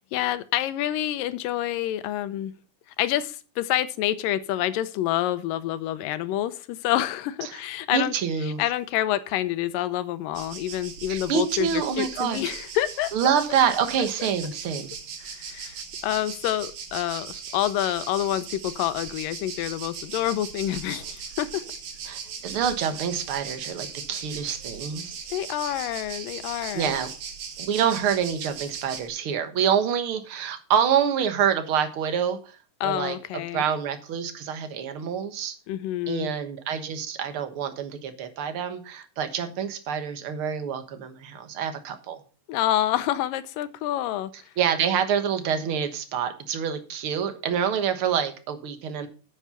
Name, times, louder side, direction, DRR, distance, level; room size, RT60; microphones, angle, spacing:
voice 1, 0.1-2.5 3.0-8.1 8.5-13.1 15.2-21.6 25.3-26.9 32.8-33.6 35.7-36.3 42.5-44.3, left 13 dB, 80° left, 14 dB, 2.4 m, -27 dB
voice 2, 7.9-8.6 11.1-12.4 13.1-14.9 22.1-25.2 26.7-27.1 27.6-32.6 32.8-35.5 36.1-42.2 44.6-49.1, right 8 dB, 55° right, 8 dB, 1.7 m, -27 dB
sound 1, 10.3-29.1, right 6 dB, 85° right, 3.6 m, -39 dB
9.4 x 8.0 x 5.7 m, 0.35 s
omnidirectional pair, 3.9 m